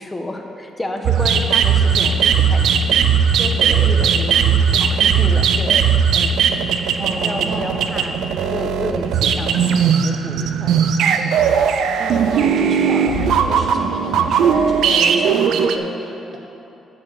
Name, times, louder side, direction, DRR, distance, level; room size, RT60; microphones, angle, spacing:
voice 1, 0.0-3.1 3.8-3.9 4.7-6.4 7.0-11.4, left 1 dB, 15° left, 3 dB, 1.1 m, -31 dB
sound 1, 1.0-15.8, right 7 dB, 80° right, 0.5 m, -17 dB
voice 2, 3.3-4.5 7.0-7.7 12.0-16.4, right 2 dB, 50° right, 0 dB, 1.7 m, -29 dB
12.0 x 4.6 x 7.7 m, 2.8 s
cardioid pair, 85°, 0 cm